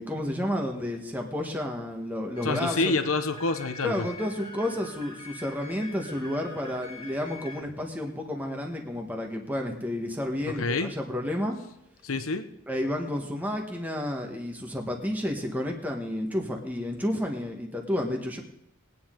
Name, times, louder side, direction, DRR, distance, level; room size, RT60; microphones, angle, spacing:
voice 1, 0.0-2.9 3.8-11.6 12.7-18.4, left 1 dB, 10° right, 2 dB, 1.3 m, -31 dB
voice 2, 2.4-4.1 10.6-10.9 12.0-12.4, left 3 dB, 75° left, 9 dB, 1.0 m, -27 dB
sound 1, 2.4-7.6, left 2 dB, 20° left, 2.2 m, -45 dB
20.0 x 9.6 x 3.8 m, 0.82 s
head